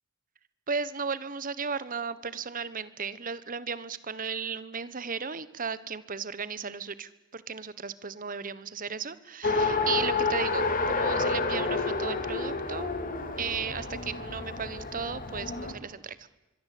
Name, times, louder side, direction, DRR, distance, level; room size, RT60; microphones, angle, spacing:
voice 1, 0.7-12.9 13.4-16.3, right 5 dB, 40° right, 16 dB, 1.2 m, -35 dB
Race car auto racing, 9.4-15.7, left 3 dB, 40° left, 2.8 m, -29 dB
24.5 x 23.0 x 8.5 m, 1.0 s
head